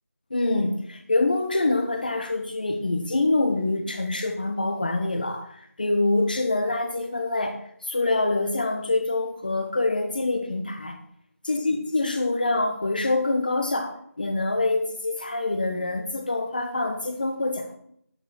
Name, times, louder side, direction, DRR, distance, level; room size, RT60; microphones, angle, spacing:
voice 1, 0.3-11.0 11.4-17.8, left 2 dB, 35° left, 6 dB, 1.6 m, -25 dB
11.0 x 8.4 x 6.4 m, 0.69 s
figure-of-eight pair, 170°, 9 cm